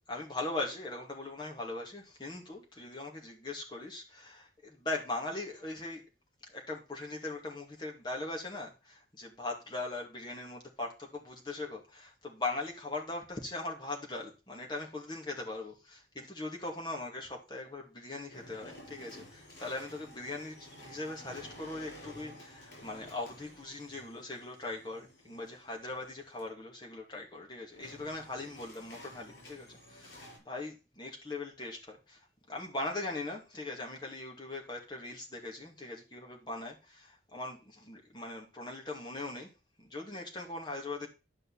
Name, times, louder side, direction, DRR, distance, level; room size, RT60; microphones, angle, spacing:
voice 1, 0.1-6.0 6.5-32.2 32.5-39.5 39.8-41.1, left 2 dB, 25° left, -1 dB, 2.3 m, -40 dB
sound 1, 18.3-26.4 27.7-30.4, left 1 dB, 80° left, 6.2 m, -52 dB
11.0 x 5.5 x 4.1 m, 0.31 s
head